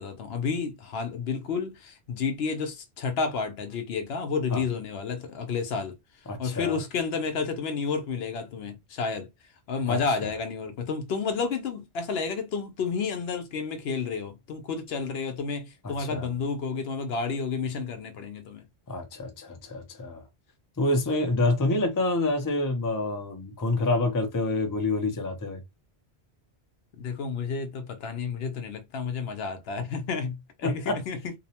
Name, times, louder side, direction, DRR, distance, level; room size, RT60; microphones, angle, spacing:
voice 1, 0.0-5.9 6.4-9.3 9.7-18.7 27.0-31.3, left 5 dB, 75° left, 0.8 m, -31 dB
voice 2, 6.3-6.8 9.9-10.0 15.8-16.3 18.9-20.2 20.8-25.6 30.6-31.0, left 2 dB, 25° left, 0.4 m, -27 dB
2.7 x 2.0 x 2.8 m
omnidirectional pair, 1.1 m